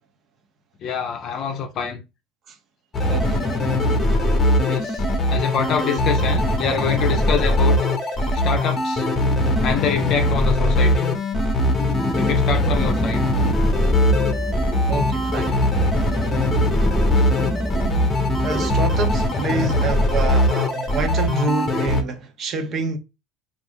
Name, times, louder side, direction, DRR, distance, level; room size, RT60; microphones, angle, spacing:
voice 1, 0.8-2.0 4.6-5.0 5.3-7.8 8.3-9.1 9.6-11.0 12.2-13.2, left 6 dB, 45° left, 0.6 m, -26 dB
sound 1, 2.9-22.0, left 1 dB, 20° left, 0.9 m, -20 dB
voice 2, 3.1-3.4 14.9-15.6 17.1-17.3 18.4-23.0, right 3 dB, 40° right, 0.8 m, -27 dB
sound 2, 11.6-18.9, right 1 dB, ahead, 0.3 m, -27 dB
4.0 x 2.5 x 3.5 m
supercardioid pair, 120°, 0 cm